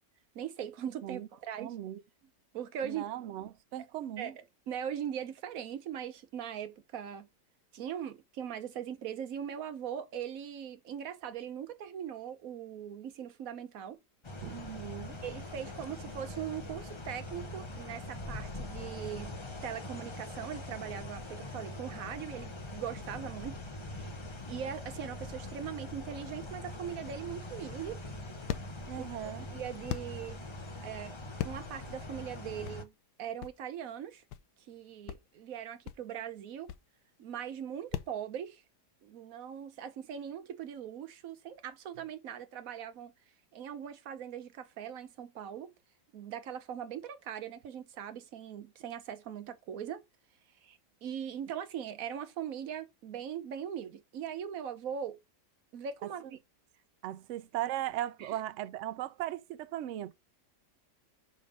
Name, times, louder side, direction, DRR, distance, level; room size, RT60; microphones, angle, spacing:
voice 1, 0.3-1.8 2.5-3.0 4.2-7.3 7.7-14.0 15.2-19.4 19.6-23.6 23.9-24.1 24.5-28.0 29.0-29.1 29.5-30.4 30.8-31.2 31.4-32.9 33.2-34.2 34.7-36.7 37.2-38.6 39.0-43.1 43.5-45.7 46.1-50.0 50.6-55.2 55.7-56.4 58.2-58.4, right 9 dB, 60° right, 1.1 m, -40 dB
voice 2, 1.6-2.0 2.8-4.3 14.4-15.2 28.9-29.5 57.0-60.1, right 13 dB, 80° right, 0.6 m, -38 dB
sound 1, 14.2-32.8, left 2 dB, 30° left, 0.6 m, -43 dB
sound 2, 27.4-38.2, left 12 dB, 80° left, 1.2 m, -42 dB
5.3 x 5.3 x 5.2 m
omnidirectional pair, 1.8 m